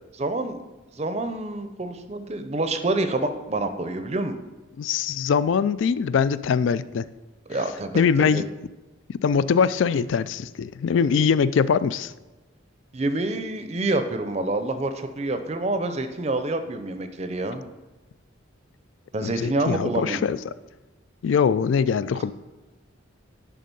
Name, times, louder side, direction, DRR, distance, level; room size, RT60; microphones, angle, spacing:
voice 1, 0.1-0.6 0.9-4.4 7.5-8.4 10.9-11.0 12.9-17.7 19.1-20.2 22.2-22.3, right 2 dB, 30° right, 8 dB, 0.5 m, -27 dB
voice 2, 4.8-7.1 7.9-8.5 9.1-12.1 19.2-20.4 21.2-22.3, left 6 dB, 70° left, 16 dB, 0.3 m, -22 dB
10.5 x 3.7 x 5.3 m, 1.1 s
head